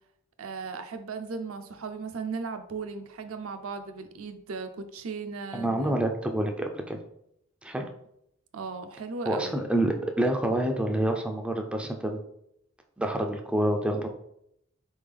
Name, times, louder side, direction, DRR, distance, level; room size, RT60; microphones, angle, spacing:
voice 1, 0.4-5.9 8.5-9.6, right 4 dB, 75° right, 7 dB, 0.5 m, -37 dB
voice 2, 5.5-7.0 7.6-7.8 9.3-12.2 13.0-14.1, right 1 dB, 5° right, 3 dB, 0.3 m, -27 dB
4.3 x 3.5 x 3.4 m, 0.77 s
head